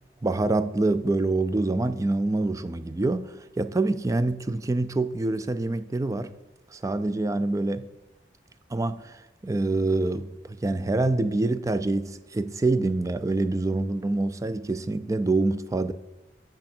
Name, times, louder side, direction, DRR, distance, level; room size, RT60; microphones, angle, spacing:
voice 1, 0.2-6.3 6.7-7.9 8.7-15.9, right 2 dB, 20° right, 0.3 m, -26 dB
8.7 x 6.1 x 4.3 m
head